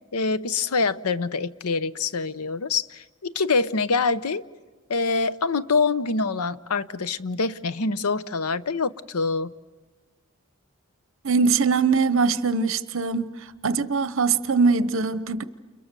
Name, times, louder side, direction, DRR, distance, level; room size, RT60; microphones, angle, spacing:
voice 1, 0.1-4.4 4.9-9.5, left 4 dB, 85° left, 0.8 m, -25 dB
voice 2, 11.2-13.3 13.6-15.4, right 4 dB, 60° right, 0.9 m, -22 dB
30.0 x 29.0 x 6.9 m
head